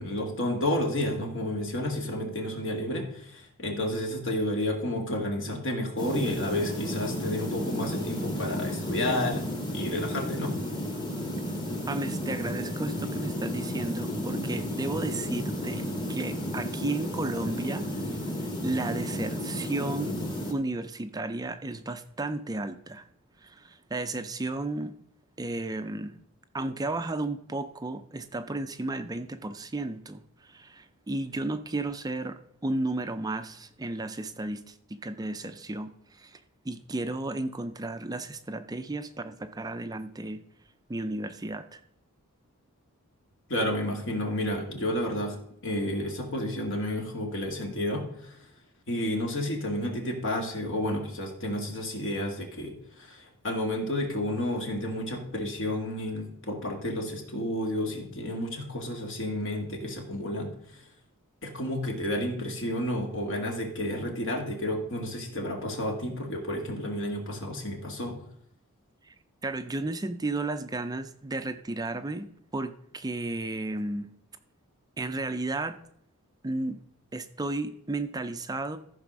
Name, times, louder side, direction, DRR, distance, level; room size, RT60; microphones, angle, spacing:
voice 1, 0.0-9.5 9.7-10.5 43.5-45.4 45.6-48.4 48.9-60.5 61.4-68.2, left 1 dB, 60° left, 2 dB, 2.1 m, -31 dB
sound 1, 6.0-20.5, equal, 20° left, 1.5 m, -33 dB
voice 2, 11.9-20.2 20.5-23.0 23.4-24.9 25.4-26.2 26.5-36.4 36.6-40.4 40.9-41.8 69.1-69.2 69.4-74.1 75.0-75.8 76.4-76.8 77.1-78.8, right 2 dB, 15° right, 9 dB, 0.4 m, -33 dB
14.0 x 4.8 x 6.1 m, 0.71 s
head